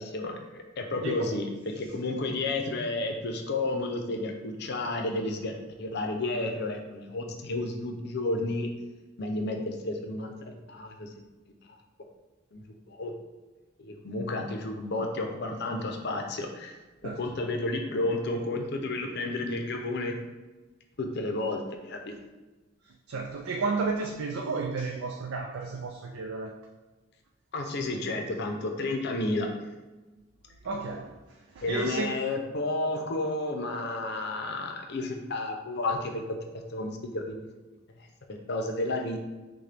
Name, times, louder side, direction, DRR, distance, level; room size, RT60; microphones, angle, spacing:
voice 1, 0.0-8.7 9.2-10.3 10.7-11.1 12.5-13.1 13.8-20.2 21.0-22.1 27.5-29.5 31.6-36.2 36.5-37.5 38.3-39.2, left 2 dB, 55° left, 3 dB, 0.6 m, -31 dB
voice 2, 23.1-26.6 30.6-31.2 31.5-32.2, right 4 dB, 85° right, 2 dB, 0.4 m, -32 dB
6.4 x 2.2 x 3.4 m, 1.2 s
head